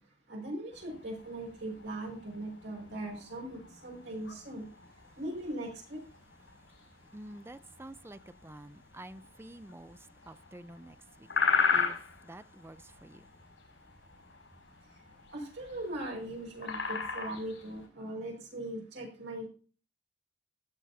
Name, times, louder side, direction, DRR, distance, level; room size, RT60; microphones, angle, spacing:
voice 1, 0.3-4.7 5.2-6.0 15.3-19.5, right 1 dB, 70° right, 5.4 m, -40 dB
sound 1, 0.7-17.9, left 5 dB, 85° left, 5.3 m, -38 dB
voice 2, 7.1-10.0 10.3-11.3 11.7-12.0 12.2-13.2, right 1 dB, 15° right, 0.5 m, -49 dB
15.5 x 7.2 x 2.8 m
head